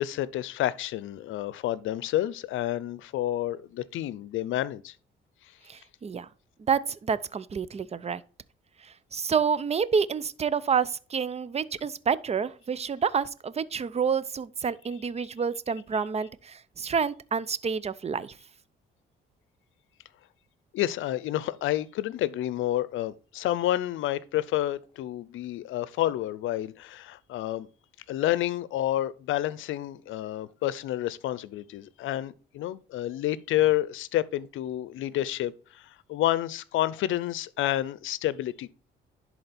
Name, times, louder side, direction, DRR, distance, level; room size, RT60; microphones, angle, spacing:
voice 1, 0.0-5.0 20.7-27.7 28.1-38.7, left 14 dB, 80° left, 0.6 m, -29 dB
voice 2, 5.7-6.3 6.7-8.2 8.8-18.3, right 6 dB, 30° right, 0.6 m, -28 dB
11.0 x 4.2 x 4.3 m
cardioid pair, 90°, 20 cm